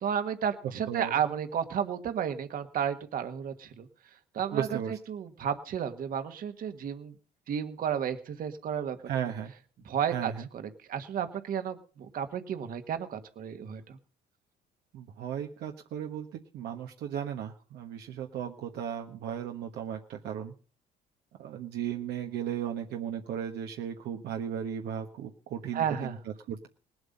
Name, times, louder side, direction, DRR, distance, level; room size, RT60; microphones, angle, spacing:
voice 1, 0.0-3.9 4.3-4.8 5.1-7.1 7.5-9.0 9.9-14.0 25.7-26.1, right 8 dB, 55° right, 8 dB, 1.7 m, -32 dB
voice 2, 0.9-1.2 4.5-5.0 9.1-9.5 10.1-10.5 14.9-20.5 21.4-26.7, right 9 dB, 75° right, 3 dB, 1.4 m, -36 dB
19.0 x 8.0 x 5.4 m, 0.39 s
cardioid pair, 110°, 17 cm